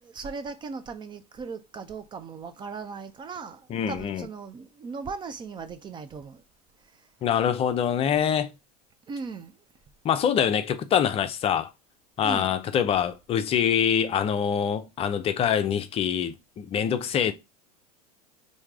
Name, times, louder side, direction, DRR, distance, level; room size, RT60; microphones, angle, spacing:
voice 1, 0.0-6.4 9.1-9.5 12.2-12.6, right 4 dB, 25° right, 0.5 m, -38 dB
voice 2, 3.7-4.3 7.2-8.5 10.0-11.7 12.2-17.3, left 8 dB, 30° left, 0.5 m, -25 dB
4.5 x 2.7 x 3.5 m
figure-of-eight pair, 80°, 20 cm